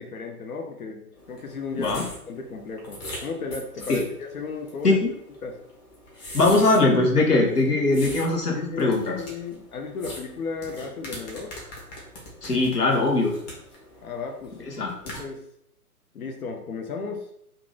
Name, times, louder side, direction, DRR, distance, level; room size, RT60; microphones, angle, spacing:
voice 1, 0.0-2.0 2.3-5.0 5.4-5.6 8.5-11.5 14.0-14.5 15.0-15.4 16.1-17.2, left 4 dB, 65° left, 3 dB, 0.7 m, -34 dB
sound 1, 1.2-15.2, left 1 dB, 30° left, 1.0 m, -42 dB
voice 2, 6.3-9.2 12.4-13.3 14.8-14.9, left 2 dB, 85° left, -1 dB, 1.1 m, -21 dB
2.8 x 2.5 x 3.8 m, 0.74 s
figure-of-eight pair, 130°, 45 cm